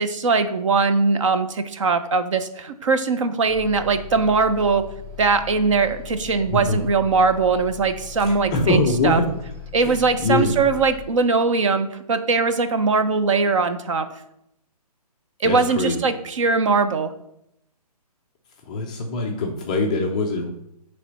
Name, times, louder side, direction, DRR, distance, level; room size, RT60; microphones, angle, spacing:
voice 1, 0.0-4.8 5.2-8.8 9.0-9.2 9.7-14.1 15.4-17.1, right 4 dB, 50° right, 9 dB, 0.7 m, -21 dB
Bus, 3.5-11.0, left 8 dB, 10° right, 1.9 m, -39 dB
voice 2, 8.2-9.3 9.8-10.6 15.4-16.1 18.6-20.5, left 2 dB, 10° left, -1 dB, 0.3 m, -23 dB
8.3 x 3.4 x 5.3 m, 0.80 s
hypercardioid pair, 150°, 20 cm